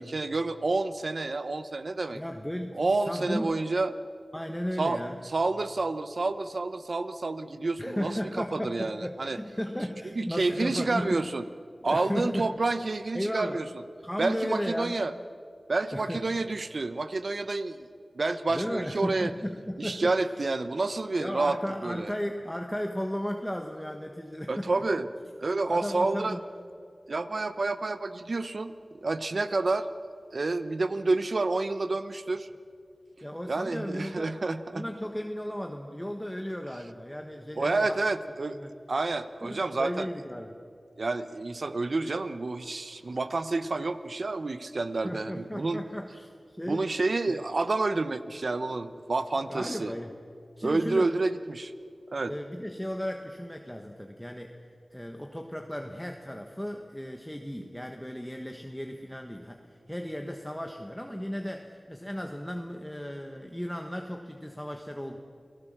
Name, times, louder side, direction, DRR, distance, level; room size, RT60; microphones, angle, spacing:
voice 1, 0.0-2.2 2.8-3.9 4.8-5.0 5.3-9.4 10.2-11.4 11.8-13.7 14.2-15.1 15.7-17.9 18.1-19.3 19.8-22.1 24.5-25.1 25.4-26.4 27.1-28.7 29.0-29.9 30.3-32.5 33.5-34.9 37.6-38.6 38.9-40.1 41.0-45.8 46.7-49.9 50.6-51.7 52.1-52.3, right 3 dB, 65° right, 11 dB, 1.0 m, -29 dB
voice 2, 2.1-3.6 4.3-5.2 7.8-11.3 11.8-12.6 13.1-13.6 14.0-15.0 15.9-16.2 18.5-20.4 21.2-24.8 25.7-26.4 33.2-34.3 34.7-38.0 38.5-38.7 39.4-40.6 45.0-46.9 47.3-47.4 49.5-50.2 50.6-51.1 52.3-54.6 54.9-65.2, equal, 5° left, 4 dB, 1.3 m, -35 dB
29.0 x 18.0 x 7.4 m, 2.4 s
wide cardioid pair, 65°, 0 cm